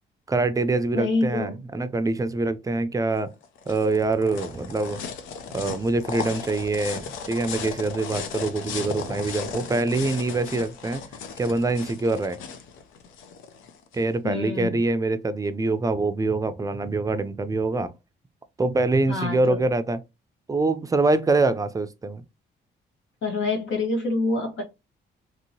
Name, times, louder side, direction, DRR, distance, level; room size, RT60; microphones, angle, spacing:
voice 1, 0.3-3.3 3.7-5.0 5.5-11.0 11.4-12.4 13.9-17.9 18.6-20.0 20.5-22.2, right 3 dB, 15° right, 0.4 m, -24 dB
voice 2, 0.9-1.5 14.2-14.8 19.1-19.6 23.2-24.6, left 3 dB, 75° left, 1.2 m, -26 dB
sound 1, 3.2-14.0, left 6 dB, 90° left, 0.5 m, -36 dB
2.9 x 2.8 x 2.7 m
cardioid pair, 90°, 20 cm